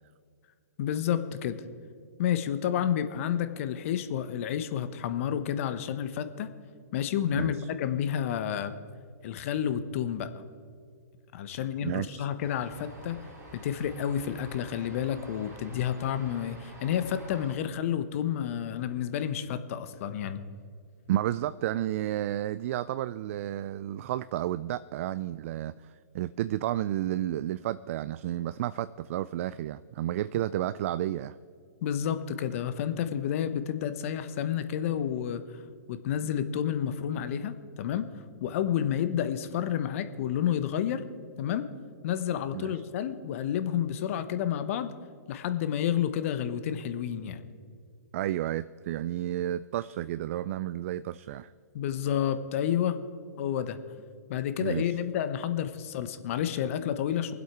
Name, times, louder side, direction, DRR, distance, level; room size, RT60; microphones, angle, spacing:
voice 1, 0.8-1.6 2.2-6.5 6.9-8.7 9.2-10.3 11.3-13.2 13.5-20.4 31.8-35.4 35.9-38.1 38.4-41.0 41.4-41.7 42.0-44.9 45.3-47.5 51.7-53.0 53.4-53.8 54.3-57.3, left 9 dB, 50° left, 11 dB, 1.0 m, -30 dB
voice 2, 7.3-7.7 11.8-12.3 21.1-31.4 42.5-42.7 48.1-51.5 54.6-54.8, right 13 dB, 50° right, 15 dB, 0.3 m, -31 dB
sound 1, 12.4-17.5, right 1 dB, 25° right, 2.8 m, -49 dB
23.5 x 8.1 x 4.7 m, 2.2 s
hypercardioid pair, 130°, 9 cm